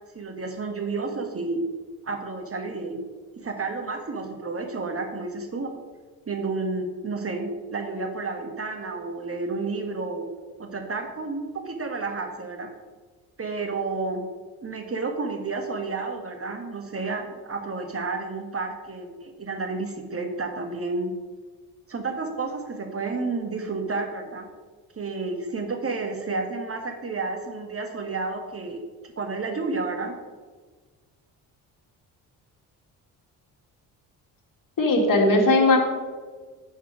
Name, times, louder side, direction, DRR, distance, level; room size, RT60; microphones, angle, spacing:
voice 1, 0.1-1.6 2.0-3.0 3.4-5.7 6.3-10.3 10.6-12.7 13.4-14.2 14.6-21.1 21.9-24.5 25.0-28.8 29.2-30.2, right 3 dB, 35° right, 4 dB, 1.4 m, -31 dB
voice 2, 34.8-35.8, left 2 dB, 50° left, 1 dB, 2.3 m, -18 dB
10.0 x 4.7 x 4.8 m, 1.4 s
supercardioid pair, 65°, 42 cm